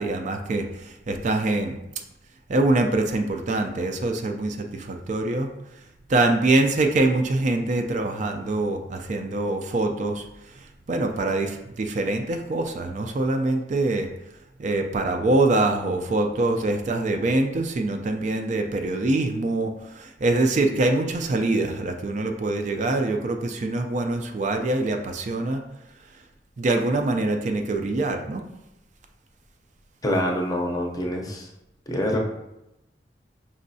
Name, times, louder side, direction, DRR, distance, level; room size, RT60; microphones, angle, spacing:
voice 1, 0.0-1.8 2.5-5.5 6.1-14.1 14.6-25.6 26.6-28.4, right 2 dB, 45° right, 4 dB, 0.4 m, -24 dB
voice 2, 30.0-31.5 31.9-32.2, equal, 20° left, 0 dB, 0.6 m, -25 dB
5.3 x 3.1 x 2.7 m, 0.90 s
head